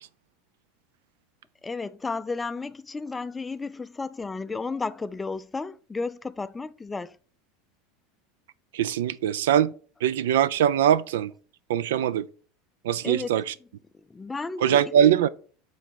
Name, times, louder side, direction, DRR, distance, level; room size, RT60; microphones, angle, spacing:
voice 1, 1.6-7.2 13.0-13.3 14.1-14.9, left 4 dB, 15° left, 0.4 m, -33 dB
voice 2, 8.7-9.7 10.0-11.3 11.7-12.3 12.8-13.5 14.6-15.3, right 10 dB, 85° right, 0.4 m, -22 dB
7.3 x 3.9 x 4.1 m
supercardioid pair, 115°, 0 cm